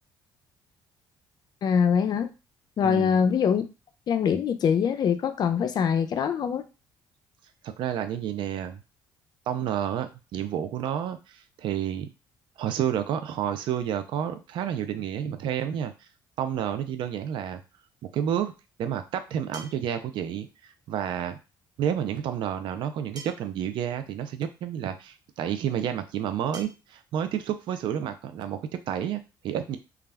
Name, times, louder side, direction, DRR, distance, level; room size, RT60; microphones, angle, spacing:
voice 1, 1.6-2.3 2.8-3.6 4.1-6.6, left 7 dB, 55° left, 10 dB, 0.4 m, -23 dB
voice 2, 2.8-3.2 7.6-8.8 9.5-12.1 12.6-15.9 16.4-17.6 18.0-18.5 18.8-21.4 21.8-29.8, right 9 dB, 65° right, 9 dB, 0.4 m, -30 dB
sound 1, 17.8-17.9 19.5-20.0 21.5-21.6 23.2-23.6 24.8-24.9 26.5-26.7, right 3 dB, 50° right, 0.8 m, -44 dB
2.3 x 2.0 x 3.3 m, 0.29 s
supercardioid pair, 80°, 9 cm